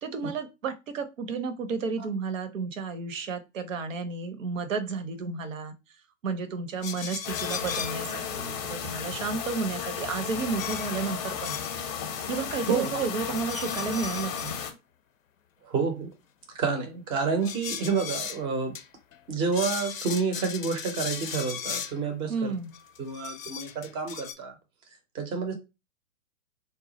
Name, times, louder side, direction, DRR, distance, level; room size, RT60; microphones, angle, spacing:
voice 1, 0.0-5.7 6.2-11.6 12.3-14.6 22.3-22.7, right 5 dB, 75° right, 0.6 m, -32 dB
sound 1, 6.8-8.0 10.6-11.8 12.1-12.9 13.2-14.7 17.4-18.4 18.7-18.8 19.1-19.2 19.5-22.0 22.7-24.3, left 7 dB, 85° left, 0.5 m, -37 dB
sound 2, 7.2-14.7, left 7 dB, 35° left, 0.5 m, -34 dB
voice 2, 15.6-16.1 16.5-18.8 19.3-22.5 23.0-24.5 25.1-25.5, right 5 dB, 15° right, 0.4 m, -29 dB
2.2 x 2.0 x 3.8 m
figure-of-eight pair, 110°, 39 cm